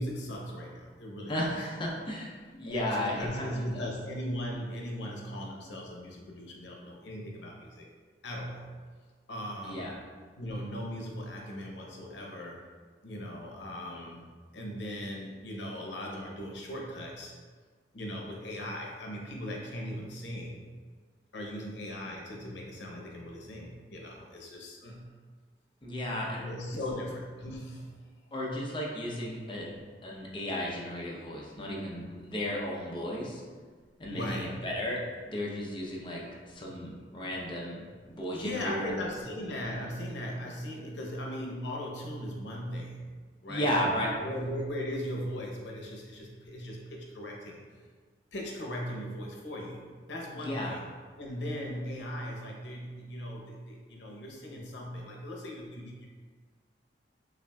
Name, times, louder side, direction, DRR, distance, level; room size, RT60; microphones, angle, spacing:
voice 1, 0.0-1.7 2.6-7.9 8.2-8.7 9.3-9.9 10.4-12.6 13.0-14.2 14.5-17.3 17.9-20.6 21.3-25.1 26.4-27.9 28.5-28.6 34.1-34.5 38.3-43.0 43.4-47.6 48.3-49.8 50.1-50.8 51.2-56.1, equal, 90° left, -1 dB, 0.7 m, -38 dB
voice 2, 1.3-3.9 9.6-9.9 25.8-26.5 28.3-29.7 30.0-33.4 34.0-35.0 35.3-38.9 43.5-44.1 50.4-50.7, left 1 dB, 30° left, -3 dB, 0.6 m, -34 dB
5.9 x 2.5 x 2.2 m, 1.5 s
head